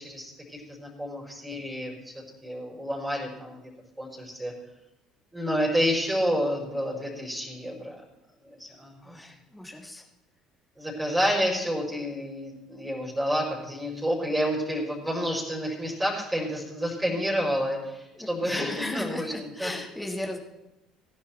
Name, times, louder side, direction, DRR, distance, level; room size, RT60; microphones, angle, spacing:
voice 1, 0.0-2.1 2.4-3.6 4.0-4.5 5.3-8.0 8.4-9.1 10.8-19.7, equal, 10° right, -2 dB, 5.4 m, -29 dB
voice 2, 9.0-10.0 18.1-20.4, left 1 dB, 5° left, 1 dB, 2.9 m, -36 dB
18.5 x 10.5 x 4.5 m, 0.94 s
figure-of-eight pair, 55°, 0 cm